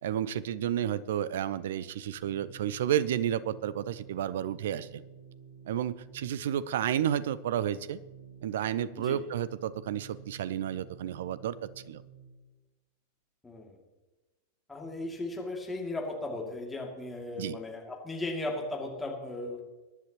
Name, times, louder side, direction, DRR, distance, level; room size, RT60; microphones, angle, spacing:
voice 1, 0.0-5.0 5.7-8.0 8.4-11.6 11.9-12.0 17.4-17.6, right 10 dB, 60° right, 18 dB, 0.6 m, -31 dB
Organ, 1.7-12.4, right 6 dB, 80° right, 3.4 m, -52 dB
voice 2, 13.4-13.8 14.7-19.6, left 2 dB, 10° left, 0 dB, 2.6 m, -36 dB
21.5 x 10.5 x 3.0 m, 1.2 s
figure-of-eight pair, 90°, 0 cm